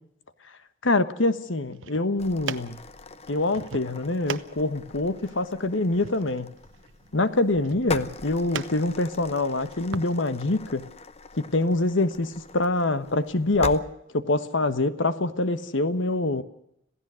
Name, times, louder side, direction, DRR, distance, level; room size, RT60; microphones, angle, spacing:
voice 1, 0.8-2.8 3.3-6.5 7.1-10.9 11.4-13.8 14.1-16.4, left 2 dB, 80° left, 12 dB, 1.3 m, -25 dB
sound 1, 1.6-10.1, right 5 dB, 90° right, 0.9 m, -41 dB
sound 2, 2.2-13.8, left 4 dB, 35° left, 0.8 m, -41 dB
26.5 x 16.0 x 6.4 m, 0.77 s
head